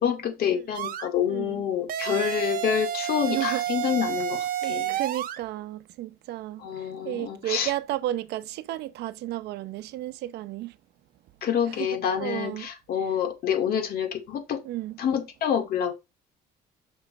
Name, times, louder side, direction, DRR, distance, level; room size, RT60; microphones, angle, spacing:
voice 1, 0.0-5.0 6.6-7.7 11.4-14.6 15.0-15.9, left 8 dB, 65° left, 2.3 m, -27 dB
sound 1, 0.7-1.1 1.9-5.4, right 12 dB, 60° right, 1.0 m, -30 dB
voice 2, 1.3-1.6 3.2-3.6 4.6-6.6 7.1-10.7 12.2-12.7 14.6-15.0, right 14 dB, 80° right, 0.7 m, -33 dB
6.3 x 6.1 x 4.2 m
cardioid pair, 110°, 17 cm